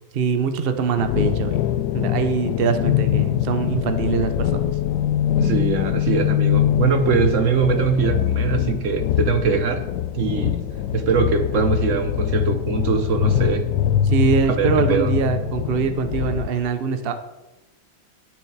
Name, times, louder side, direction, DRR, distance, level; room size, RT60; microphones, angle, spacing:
voice 1, 0.1-1.6 1.9-4.7 14.0-17.1, right 5 dB, 75° right, 8 dB, 0.5 m, -23 dB
sound 1, 1.0-16.5, left 11 dB, 75° left, 1.0 m, -23 dB
voice 2, 5.4-9.8 10.1-10.6 10.9-13.6 14.6-15.1, right 6 dB, 50° right, 8 dB, 1.0 m, -22 dB
10.5 x 9.5 x 4.8 m, 1.0 s
omnidirectional pair, 2.2 m